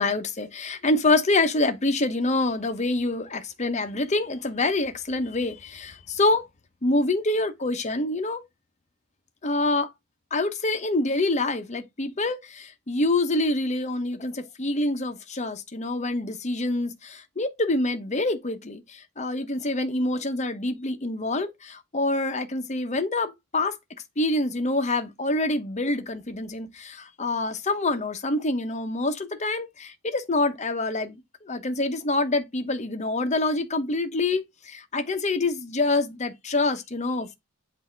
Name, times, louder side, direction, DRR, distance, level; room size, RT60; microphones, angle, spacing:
voice 1, 0.0-6.5 6.8-8.4 9.4-9.9 10.3-23.7 24.2-37.3, left 2 dB, 35° left, 0.9 m, -26 dB
8.0 x 2.7 x 4.4 m
head